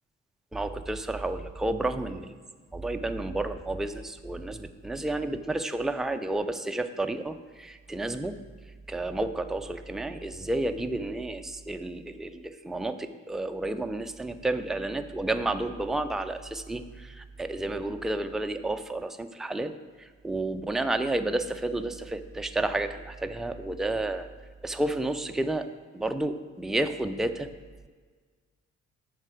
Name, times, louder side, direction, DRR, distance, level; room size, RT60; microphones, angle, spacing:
voice 1, 0.5-2.3 2.7-8.4 8.9-19.7 20.0-24.3 24.6-25.7 25.9-27.5, right 2 dB, ahead, 7 dB, 0.5 m, -31 dB
7.4 x 5.9 x 4.9 m, 1.5 s
hypercardioid pair, 45°, 39 cm